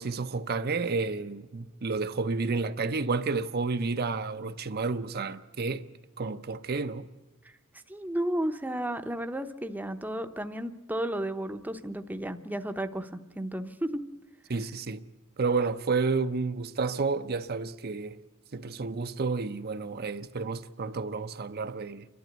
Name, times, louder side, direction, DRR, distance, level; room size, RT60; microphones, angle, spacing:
voice 1, 0.0-5.8 6.2-7.0 14.5-15.0 15.4-18.2 18.5-22.1, right 4 dB, 50° right, 0.7 m, -30 dB
voice 2, 7.9-13.1 13.3-14.0, right 1 dB, 10° right, 0.8 m, -33 dB
29.5 x 12.0 x 8.1 m
head